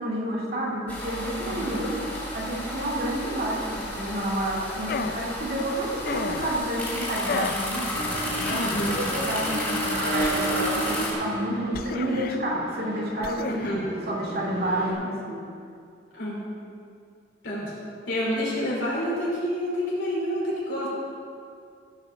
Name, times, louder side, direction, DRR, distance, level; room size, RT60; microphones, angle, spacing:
voice 1, 0.0-2.0 2.3-8.0 8.4-13.6 14.1-15.5, right 1 dB, 55° right, -4 dB, 2.3 m, -30 dB
sound 1, 0.9-11.1, left 1 dB, 10° left, 2.9 m, -32 dB
voice 2, 1.5-1.8 8.6-8.9 13.4-13.8 16.1-16.4 17.4-17.7 18.1-20.9, equal, 80° left, -6 dB, 3.3 m, -28 dB
sound 2, 4.9-5.3 6.1-6.6 7.3-7.7 8.4-9.0 10.2-10.9 11.7-12.4 13.2-13.7, left 5 dB, 55° left, 0.4 m, -33 dB
sound 3, 7.9-14.9, right 1 dB, 85° right, 3.0 m, -32 dB
15.5 x 5.7 x 6.2 m, 2.4 s
head